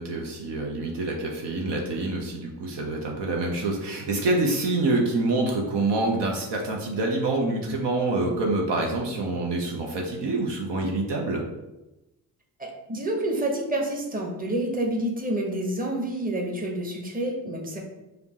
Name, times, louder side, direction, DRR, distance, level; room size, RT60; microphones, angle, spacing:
voice 1, 0.0-11.4, right 2 dB, 60° right, 0 dB, 0.8 m, -26 dB
voice 2, 12.6-17.8, right 1 dB, 20° right, 0 dB, 1.0 m, -28 dB
5.0 x 2.0 x 2.9 m, 0.98 s
hypercardioid pair, 40°, 47 cm